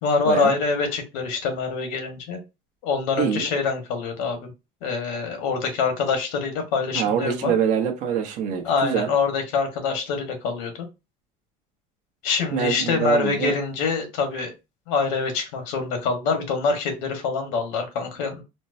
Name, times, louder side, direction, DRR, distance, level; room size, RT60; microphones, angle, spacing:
voice 1, 0.0-2.4 2.8-4.5 4.8-7.5 8.6-10.9 12.2-14.5 14.9-18.4, left 4 dB, 85° left, 1.3 m, -25 dB
voice 2, 3.2-3.5 6.9-9.1 12.5-13.5, right 7 dB, 50° right, 0.8 m, -24 dB
4.4 x 2.1 x 2.6 m
cardioid pair, 165°, 16 cm